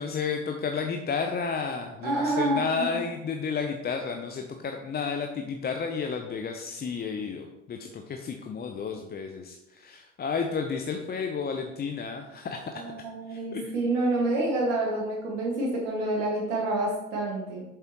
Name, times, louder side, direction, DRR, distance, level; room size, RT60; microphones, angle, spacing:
voice 1, 0.0-13.8, left 5 dB, 25° left, 4 dB, 0.8 m, -32 dB
voice 2, 2.0-3.0 12.9-17.6, right 2 dB, 70° right, -3 dB, 2.1 m, -28 dB
8.1 x 6.7 x 3.1 m, 0.94 s
figure-of-eight pair, 65°, 37 cm